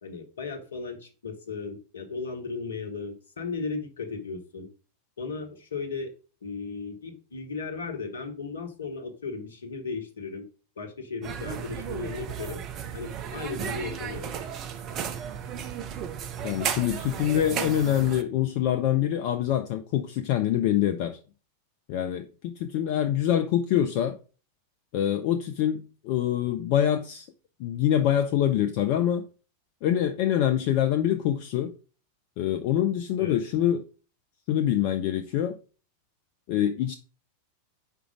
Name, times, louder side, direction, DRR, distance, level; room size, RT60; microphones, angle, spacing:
voice 1, 0.0-4.7 5.2-6.1 6.4-10.5 10.8-12.6 12.9-14.3 33.2-33.4, left 4 dB, 70° left, 1.1 m, -36 dB
sound 1, 11.2-18.2, right 8 dB, 35° right, 0.6 m, -34 dB
voice 2, 16.4-21.2 21.9-24.2 24.9-27.3 27.6-29.3 29.8-31.7 32.4-33.8 34.5-35.6 36.5-37.0, left 11 dB, 45° left, 0.5 m, -25 dB
5.0 x 4.5 x 4.9 m
figure-of-eight pair, 90°, 0 cm